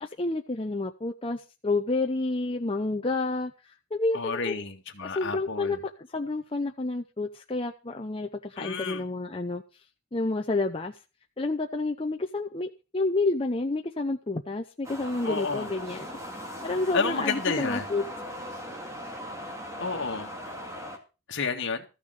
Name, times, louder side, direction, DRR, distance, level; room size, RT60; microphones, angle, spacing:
voice 1, 0.0-4.6 5.0-5.8 6.1-9.6 10.1-11.0 11.4-16.1 16.4-18.0, left 2 dB, 25° left, 4 dB, 0.7 m, -29 dB
voice 2, 4.1-5.8 8.6-9.0 15.2-15.7 16.9-17.9 19.8-20.3 21.3-21.9, left 4 dB, 55° left, 4 dB, 2.0 m, -30 dB
sound 1, 14.8-21.0, equal, 15° right, 2.3 m, -39 dB
14.0 x 6.9 x 6.6 m, 0.32 s
head